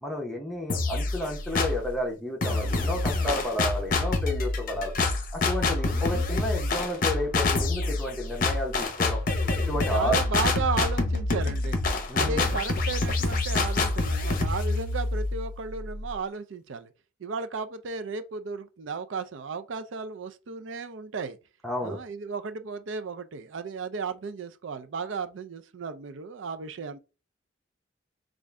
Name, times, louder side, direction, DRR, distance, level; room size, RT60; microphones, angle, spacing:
voice 1, 0.0-4.9 5.3-9.2 9.6-10.2 12.1-12.6 21.6-22.0, left 1 dB, ahead, 0.7 m, -31 dB
sound 1, 0.7-1.9 2.4-16.1, left 3 dB, 45° left, 0.6 m, -27 dB
voice 2, 9.9-11.8 12.1-16.9 17.2-21.4 21.8-27.0, right 5 dB, 80° right, 0.5 m, -34 dB
3.6 x 2.5 x 3.2 m
head